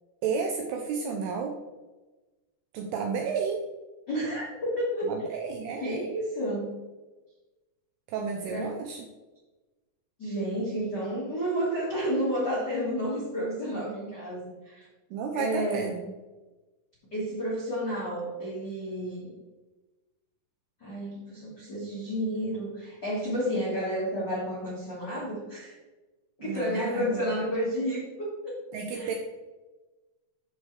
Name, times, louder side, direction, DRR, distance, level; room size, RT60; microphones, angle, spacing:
voice 1, 0.2-1.5 2.7-3.7 5.0-6.1 8.1-9.0 15.1-16.1 26.4-27.4 28.7-29.2, right 5 dB, 80° right, 2 dB, 2.4 m, -32 dB
voice 2, 4.1-5.1 5.8-6.7 8.5-8.8 10.2-14.9 15.3-15.9 17.1-19.4 20.8-25.8 26.4-28.6 28.9-29.1, equal, 70° left, -7 dB, 0.9 m, -31 dB
13.0 x 4.9 x 3.2 m, 1.2 s
omnidirectional pair, 5.3 m